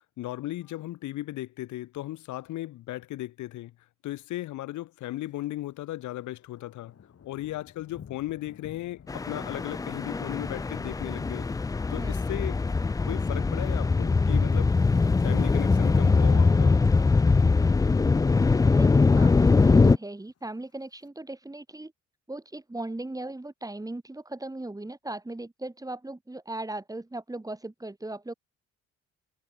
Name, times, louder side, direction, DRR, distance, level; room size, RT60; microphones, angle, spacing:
voice 1, 0.2-3.7 4.0-6.9 7.2-11.5 11.9-12.6 13.0-14.7 15.2-16.8, left 15 dB, 75° left, 0.8 m, -36 dB
Thunder, 5.0-5.5 5.8-16.2 16.5-16.9 17.3-17.8 18.0-18.1 18.3-18.4 18.8-19.4 20.1-21.1, left 8 dB, 55° left, 7.6 m, -55 dB
sound 1, 9.1-20.0, left 4 dB, 10° left, 0.3 m, -22 dB
voice 2, 19.2-21.9 22.3-28.3, right 2 dB, 10° right, 2.0 m, -38 dB
cardioid pair, 90°, 30 cm